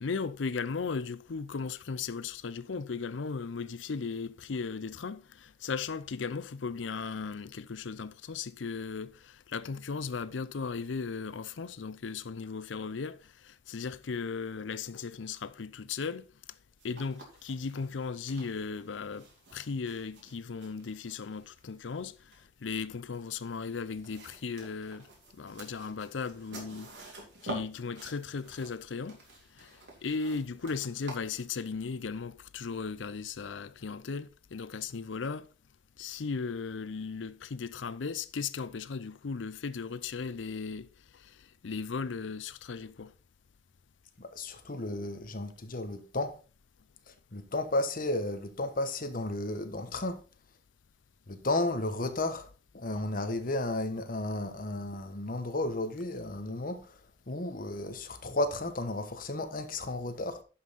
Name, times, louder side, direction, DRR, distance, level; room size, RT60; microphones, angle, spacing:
voice 1, 0.0-16.2 16.8-19.3 19.5-22.1 22.6-25.1 25.3-26.9 27.4-29.2 29.6-35.5 36.0-40.9 41.1-41.4 41.6-43.1, left 5 dB, 90° left, 0.6 m, -36 dB
sound 1, 16.8-31.4, right 2 dB, 80° right, 3.4 m, -49 dB
voice 2, 44.2-46.4 47.1-50.2 51.3-52.5 52.7-57.0 57.3-60.4, left 2 dB, 50° left, 1.1 m, -33 dB
11.0 x 5.6 x 4.1 m
head